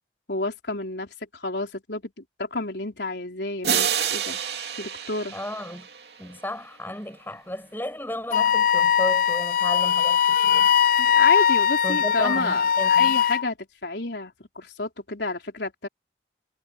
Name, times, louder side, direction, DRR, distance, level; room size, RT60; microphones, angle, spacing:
voice 1, 0.3-4.4 4.8-5.3 11.0-13.6 13.8-15.9, left 2 dB, 75° left, 3.7 m, -30 dB
sound 1, 3.6-6.3, right 8 dB, 70° right, 2.9 m, -28 dB
voice 2, 5.3-5.9 6.2-10.7 11.8-13.2, left 1 dB, 10° left, 5.9 m, -34 dB
Wind instrument woodwind instrument, 8.3-13.4, left 8 dB, 50° left, 0.5 m, -20 dB
head